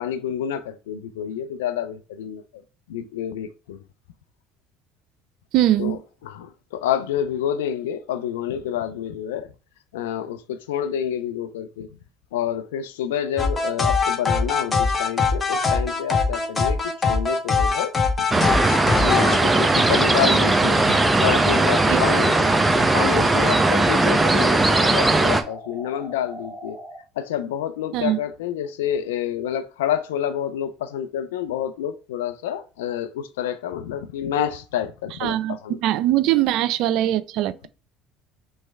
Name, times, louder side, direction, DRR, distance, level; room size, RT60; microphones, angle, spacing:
voice 1, 0.0-2.6 2.9-3.8 5.8-9.5 9.9-11.9 12.3-16.8 17.1-17.9 18.3-18.5 18.9-26.8 27.2-35.8, left 10 dB, 85° left, 0.4 m, -28 dB
voice 2, 5.5-6.0 21.9-22.0 27.9-28.2 35.2-35.6 35.8-37.7, right 13 dB, 70° right, 0.4 m, -21 dB
sound 1, 13.4-19.4, left 4 dB, 30° left, 1.1 m, -22 dB
sound 2, 18.3-25.4, right 2 dB, 15° right, 0.6 m, -18 dB
sound 3, 22.0-27.0, equal, 40° right, 1.4 m, -39 dB
3.2 x 3.1 x 4.5 m
hypercardioid pair, 70°, 0 cm